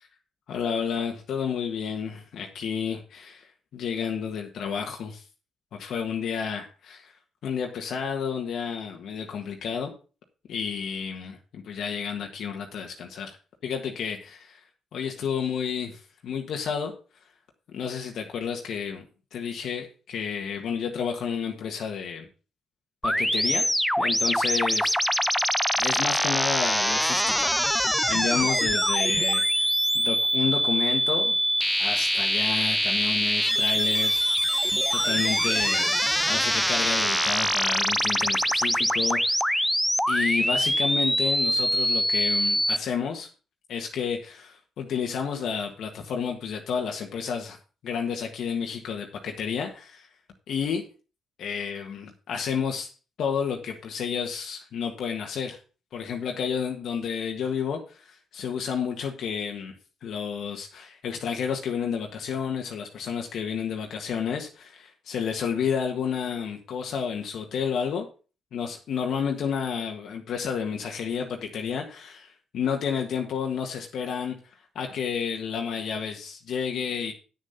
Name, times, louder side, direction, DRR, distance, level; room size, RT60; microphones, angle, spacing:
voice 1, 0.5-5.2 5.7-7.1 7.4-9.9 10.5-13.4 13.6-14.6 14.9-16.9 17.7-19.0 19.3-22.3 23.0-23.6 24.0-24.9 25.8-29.7 29.9-31.4 31.8-34.2 34.5-35.9 36.2-39.7 40.1-43.3 43.7-47.6 47.8-50.1 50.5-50.8 51.4-52.9 53.2-55.6 55.9-59.7 60.0-68.0 68.5-74.3 74.7-77.1, left 7 dB, 70° left, 2 dB, 1.6 m, -31 dB
sound 1, 23.0-42.8, equal, ahead, 0.4 m, -24 dB
8.6 x 6.7 x 5.7 m, 0.35 s
cardioid pair, 90°, 0 cm